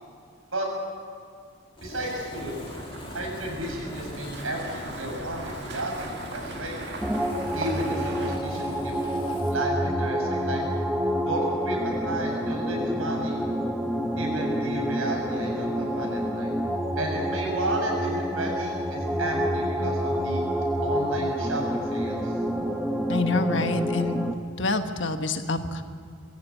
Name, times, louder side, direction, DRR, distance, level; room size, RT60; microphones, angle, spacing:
Fire, 1.8-9.6, left 1 dB, 25° left, 2.4 m, -41 dB
voice 1, 1.8-2.6 3.1-6.8 7.5-8.9 9.5-10.6 11.3-13.4 14.2-16.5 17.0-20.4 20.8-22.4, right 1 dB, 80° right, 0 dB, 7.1 m, -32 dB
sound 1, 2.1-8.4, right 2 dB, 50° right, 2.0 m, -40 dB
sound 2, 7.0-24.3, equal, ahead, 1.0 m, -28 dB
voice 2, 23.1-24.2 24.6-25.8, left 2 dB, 60° left, 7 dB, 1.4 m, -26 dB
22.5 x 16.5 x 8.4 m, 2.3 s
head